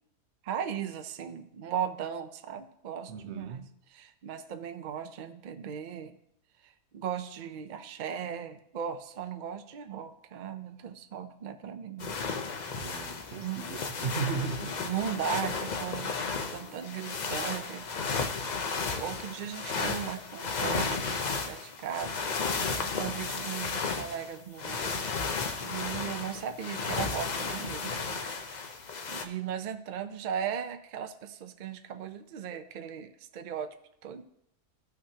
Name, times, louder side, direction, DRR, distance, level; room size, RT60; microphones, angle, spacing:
voice 1, 0.4-6.2 6.6-12.2 13.4-13.8 14.6-17.9 18.9-22.2 22.7-25.1 25.3-28.6 29.1-33.7 34.0-34.2, right 8 dB, 75° right, 8 dB, 0.4 m, -37 dB
voice 2, 3.1-3.6 12.8-14.8, right 5 dB, 60° right, 8 dB, 0.9 m, -36 dB
sound 1, 12.0-29.3, left 4 dB, 50° left, 0.5 m, -34 dB
14.5 x 5.9 x 2.8 m, 0.75 s
omnidirectional pair, 1.5 m